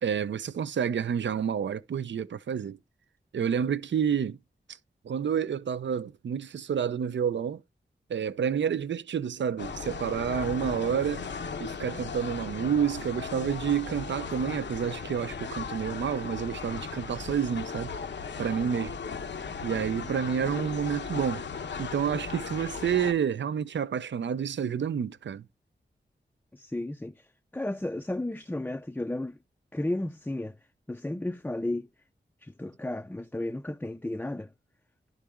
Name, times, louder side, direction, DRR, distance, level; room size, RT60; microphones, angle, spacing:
voice 1, 0.0-2.8 3.3-4.4 5.0-7.6 8.1-11.3 11.6-17.9 18.4-18.9 19.6-21.4 21.8-25.4, right 7 dB, 85° right, 0.5 m, -29 dB
sound 1, 9.6-23.1, left 5 dB, 80° left, 0.9 m, -37 dB
voice 2, 26.5-27.1 27.5-29.4 29.7-30.5 30.9-31.9 32.4-34.5, left 1 dB, 10° left, 0.4 m, -33 dB
11.5 x 3.9 x 3.5 m
wide cardioid pair, 95°, 18 cm